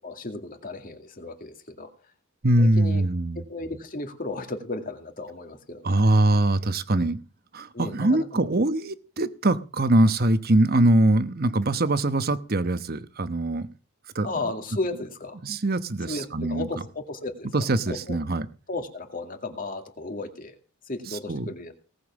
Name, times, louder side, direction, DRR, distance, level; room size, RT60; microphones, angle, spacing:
voice 1, 0.0-1.9 2.6-3.0 3.5-6.2 7.7-8.5 14.2-15.4 16.1-17.5 17.9-18.2 18.7-20.6 20.8-21.7, left 2 dB, 40° left, 6 dB, 2.3 m, -34 dB
voice 2, 2.4-3.4 5.8-7.2 7.5-13.7 14.1-14.3 15.4-16.7 17.5-18.5 21.3-21.5, right 1 dB, 45° right, 12 dB, 1.0 m, -22 dB
18.5 x 7.1 x 7.2 m, 0.36 s
head